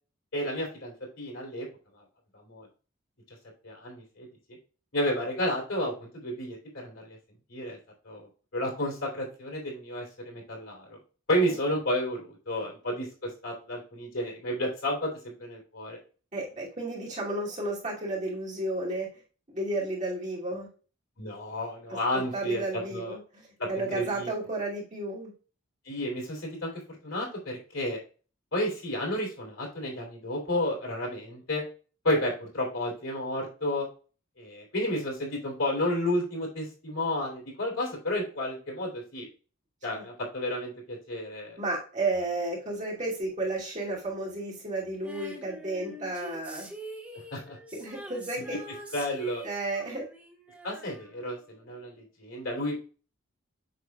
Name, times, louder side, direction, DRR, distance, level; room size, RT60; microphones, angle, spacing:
voice 1, 0.3-1.7 2.4-2.7 3.6-4.3 4.9-7.2 7.5-7.8 8.0-11.0 11.3-16.0 21.2-22.6 22.9-23.2 23.6-24.3 25.9-28.0 28.5-31.6 32.0-33.9 34.4-39.3 39.8-41.6 47.3-47.6 48.9-49.4 50.6-52.8, left 1 dB, 75° left, -1 dB, 3.1 m, -31 dB
voice 2, 16.3-19.1 19.5-20.7 22.1-25.3 39.9-40.0 41.6-46.7 47.7-48.6 49.4-50.0, right 2 dB, 35° right, -5 dB, 2.6 m, -32 dB
Female singing, 45.0-51.7 51.9-52.0, equal, 10° right, 1.3 m, -45 dB
7.8 x 6.0 x 2.3 m, 0.37 s
head